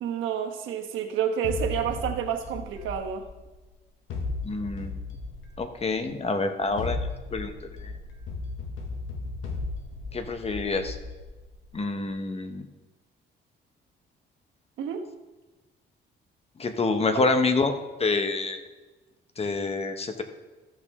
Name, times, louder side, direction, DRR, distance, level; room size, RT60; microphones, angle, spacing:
voice 1, 0.0-3.3 14.8-15.1 17.1-17.3, right 8 dB, 85° right, 3 dB, 1.2 m, -29 dB
sound 1, 1.4-3.6 4.1-5.9 6.6-11.7, left 3 dB, 85° left, 1.4 m, -35 dB
voice 2, 4.4-5.0 5.6-7.0 7.3-7.5 7.8-7.9 10.1-11.0 11.7-12.7 16.6-17.7 18.0-18.6 19.4-20.2, left 3 dB, 30° left, 7 dB, 1.0 m, -27 dB
14.0 x 6.0 x 3.6 m, 1.2 s
cardioid pair, 90°, 20 cm